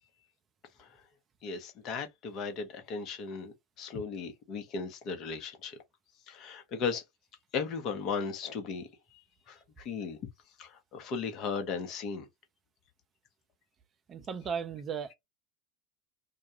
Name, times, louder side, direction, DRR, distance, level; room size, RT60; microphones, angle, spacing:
voice 1, 1.4-5.8 6.3-7.0 7.5-9.2 9.5-10.2 10.6-12.3, left 5 dB, 45° left, 0.8 m, -36 dB
voice 2, 14.1-15.1, right 6 dB, 35° right, 0.4 m, -36 dB
2.3 x 2.1 x 2.9 m
figure-of-eight pair, 75°, 0 cm